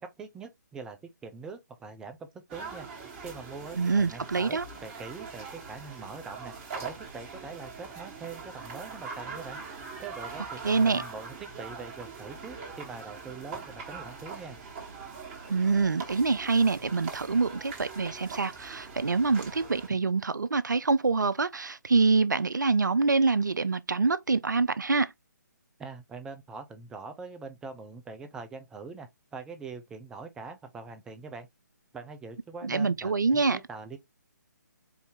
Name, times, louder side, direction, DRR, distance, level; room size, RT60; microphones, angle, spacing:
voice 1, 0.0-2.9 3.2-6.5 6.8-9.6 10.0-14.6 25.8-31.5 31.9-34.0, right 4 dB, 5° right, 0.5 m, -43 dB
sound 1, 2.5-19.9, right 5 dB, 25° right, 1.6 m, -42 dB
voice 2, 3.7-4.6 10.6-11.0 15.5-25.1 32.6-33.6, right 4 dB, 75° right, 0.5 m, -25 dB
4.7 x 2.6 x 3.6 m
figure-of-eight pair, 145°, 10 cm